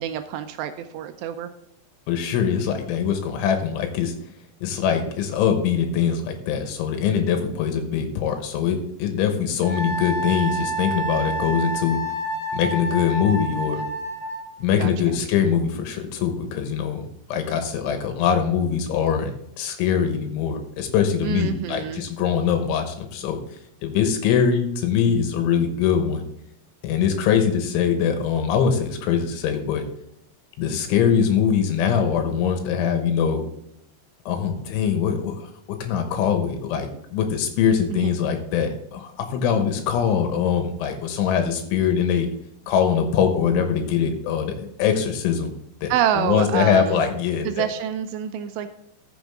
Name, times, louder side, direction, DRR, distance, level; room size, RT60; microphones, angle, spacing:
voice 1, 0.0-1.5 14.8-14.9 21.2-22.0 37.9-38.1 45.9-47.0 47.4-48.7, right 10 dB, 85° right, 8 dB, 2.6 m, -26 dB
voice 2, 2.1-4.1 4.6-12.0 12.5-13.8 14.6-17.0 17.3-23.4 23.8-26.3 26.8-29.8 30.6-33.4 34.3-42.3 42.7-45.5 45.8-47.7, left 7 dB, 85° left, 6 dB, 3.5 m, -22 dB
Wind instrument woodwind instrument, 9.6-14.5, right 1 dB, 10° right, 0.9 m, -28 dB
14.0 x 7.2 x 3.6 m, 0.78 s
omnidirectional pair, 5.4 m